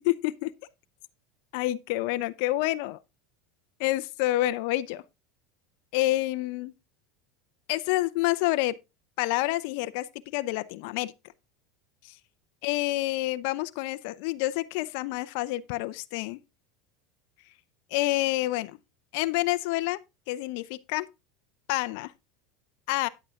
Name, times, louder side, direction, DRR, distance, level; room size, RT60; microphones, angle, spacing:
voice 1, 0.0-0.5 1.5-3.0 3.8-5.0 5.9-6.7 7.7-8.8 9.2-11.1 12.0-12.2 12.6-16.4 17.9-18.7 19.1-20.0 20.3-21.1 21.7-22.1 22.9-23.1, left 17 dB, 65° left, 0.6 m, -28 dB
9.9 x 8.2 x 3.7 m
supercardioid pair, 110°, 0 cm